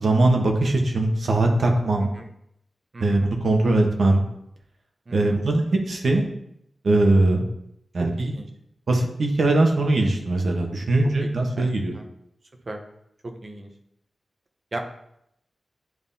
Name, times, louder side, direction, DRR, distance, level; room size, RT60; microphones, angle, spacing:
voice 1, 0.0-2.1 3.0-4.2 5.1-6.2 6.8-7.4 7.9-8.3 8.9-11.9, right 2 dB, 65° right, 2 dB, 1.1 m, -21 dB
voice 2, 2.9-3.3 5.1-5.4 8.0-8.5 11.0-12.1 12.7-12.8 13.2-13.7 14.7-14.8, right 2 dB, 35° right, 3 dB, 0.9 m, -37 dB
10.5 x 3.6 x 2.7 m, 0.77 s
wide cardioid pair, 135°, 0 cm